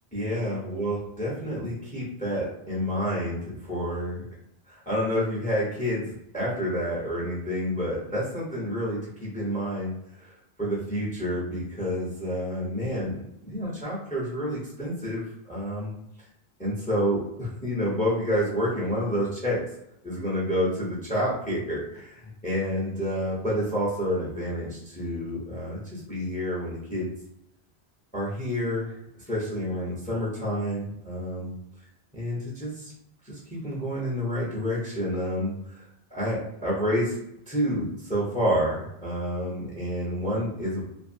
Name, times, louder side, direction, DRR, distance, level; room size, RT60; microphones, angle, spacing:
voice 1, 0.1-4.2 4.7-9.9 10.2-13.2 13.4-15.9 16.6-19.6 20.0-27.1 28.1-29.0 29.3-31.5 32.1-32.9 33.2-37.2 37.5-40.9, equal, 10° left, -6 dB, 0.7 m, -29 dB
2.5 x 2.5 x 2.6 m, 0.80 s
omnidirectional pair, 1.1 m